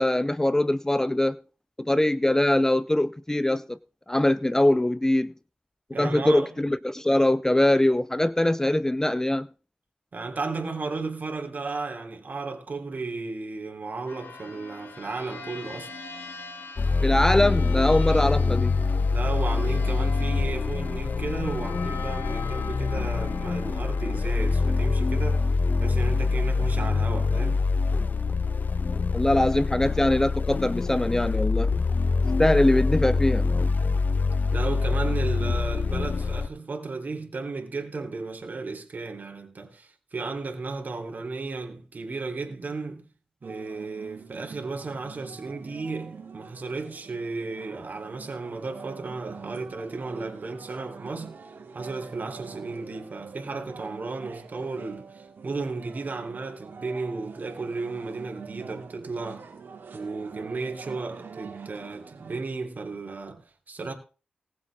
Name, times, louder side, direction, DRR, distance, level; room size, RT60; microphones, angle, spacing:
voice 1, 0.0-1.4 1.8-3.8 4.1-5.3 6.0-9.5 17.0-18.7 29.1-31.7 32.4-33.5, left 1 dB, 15° left, 0.5 m, -22 dB
voice 2, 5.9-6.5 10.1-15.9 18.0-18.2 19.1-27.7 34.5-43.1 43.4-51.4 51.7-59.5 59.9-63.9, right 3 dB, 50° right, 3.6 m, -34 dB
sound 1, 14.1-27.3, left 4 dB, 80° left, 2.5 m, -42 dB
sound 2, 16.8-36.5, left 4 dB, 50° left, 0.8 m, -25 dB
sound 3, 43.4-62.4, right 5 dB, 65° right, 2.8 m, -45 dB
19.5 x 8.0 x 3.7 m
cardioid pair, 55°, 4 cm